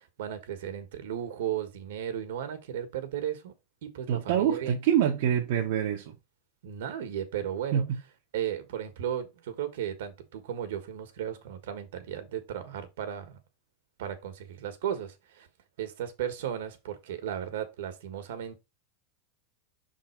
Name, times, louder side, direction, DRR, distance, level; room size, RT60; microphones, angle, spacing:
voice 1, 0.0-3.5 3.8-4.8 6.6-7.8 8.3-13.4 14.0-15.5 15.8-18.6, right 9 dB, 75° right, 1.5 m, -35 dB
voice 2, 4.1-6.1 7.7-8.0, right 9 dB, 60° right, 1.1 m, -26 dB
6.3 x 3.8 x 4.5 m
supercardioid pair, 155°, 0 cm